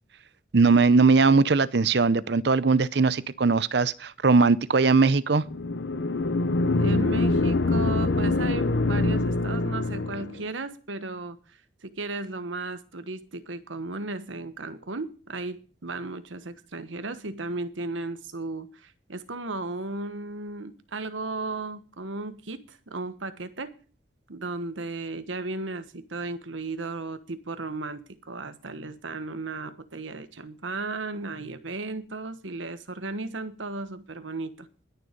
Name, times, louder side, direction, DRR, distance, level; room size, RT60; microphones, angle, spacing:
voice 1, 0.5-5.4, right 4 dB, 60° right, 0.6 m, -20 dB
sound 1, 5.5-10.4, left 2 dB, 65° left, 0.7 m, -24 dB
voice 2, 6.8-23.7 24.3-34.7, right 2 dB, 85° right, 1.3 m, -35 dB
20.5 x 6.9 x 5.2 m
head